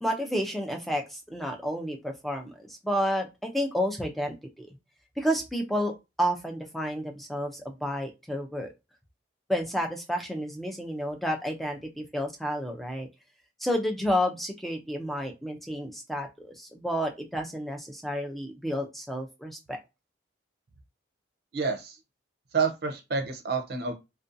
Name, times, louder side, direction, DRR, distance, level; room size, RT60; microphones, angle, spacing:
voice 1, 0.0-4.7 5.2-8.7 9.5-13.1 13.6-19.8, equal, ahead, 2 dB, 0.4 m, -31 dB
voice 2, 21.5-22.0 22.5-23.9, right 5 dB, 55° right, 5 dB, 0.5 m, -28 dB
2.5 x 2.2 x 2.5 m, 0.24 s
head